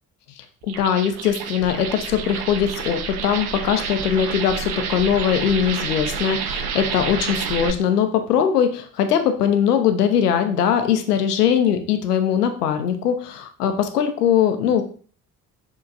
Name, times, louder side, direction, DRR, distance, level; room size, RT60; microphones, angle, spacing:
voice 1, 0.4-14.8, left 8 dB, 85° left, 8 dB, 0.6 m, -21 dB
sound 1, 0.6-7.7, right 6 dB, 60° right, 0.7 m, -29 dB
7.0 x 2.9 x 2.5 m, 0.42 s
figure-of-eight pair, 45°, 45 cm